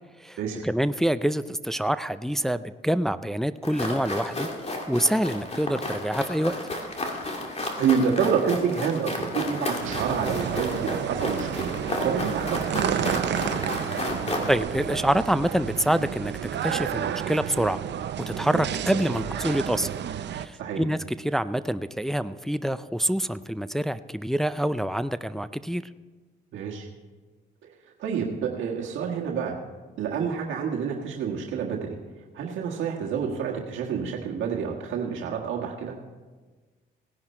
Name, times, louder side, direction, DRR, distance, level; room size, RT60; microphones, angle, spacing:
voice 1, 0.6-4.5 4.9-6.6 14.5-16.3 16.6-17.8 18.3-19.9 20.4-25.8, right 1 dB, ahead, 12 dB, 0.4 m, -26 dB
sound 1, 3.6-14.6, left 2 dB, 30° left, 2.4 m, -32 dB
voice 2, 7.8-11.8 12.0-13.2 20.6-20.9 26.5-26.9 28.0-29.6 30.0-32.0 32.3-36.0, right 6 dB, 80° right, -1 dB, 1.6 m, -28 dB
sound 2, 9.8-20.5, right 9 dB, 60° right, 0.7 m, -31 dB
17.5 x 10.5 x 4.3 m, 1.3 s
cardioid pair, 90°, 20 cm